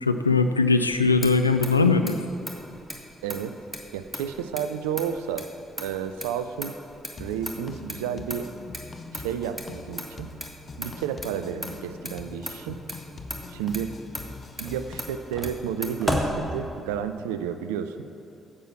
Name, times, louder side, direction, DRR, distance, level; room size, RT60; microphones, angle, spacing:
voice 1, 0.0-2.2, left 4 dB, 85° left, 8 dB, 0.3 m, -20 dB
Motor vehicle (road), 0.8-17.1, equal, 5° right, 1.5 m, -36 dB
voice 2, 3.2-3.5 3.9-5.5 5.8-6.7 7.2-8.5 9.1-10.3 10.8-12.8 13.5-13.9 14.6-18.0, right 8 dB, 70° right, 10 dB, 0.4 m, -31 dB
sound 1, 7.2-15.2, left 3 dB, 40° left, 0.8 m, -42 dB
9.9 x 7.5 x 5.9 m, 2.7 s
figure-of-eight pair, 40°, 0 cm